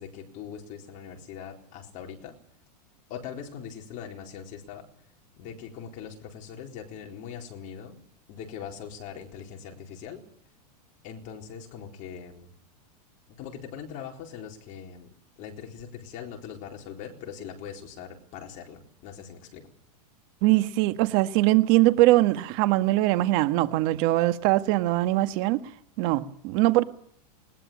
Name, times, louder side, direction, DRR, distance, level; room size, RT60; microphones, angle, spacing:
voice 1, 0.0-2.4 3.1-4.9 5.4-10.2 11.0-12.5 13.4-15.1 15.4-19.7, left 7 dB, 40° left, 3 dB, 4.2 m, -41 dB
voice 2, 20.4-25.6 26.0-26.8, right 17 dB, 45° right, 11 dB, 1.7 m, -22 dB
20.5 x 20.0 x 8.8 m, 0.63 s
supercardioid pair, 145°, 20 cm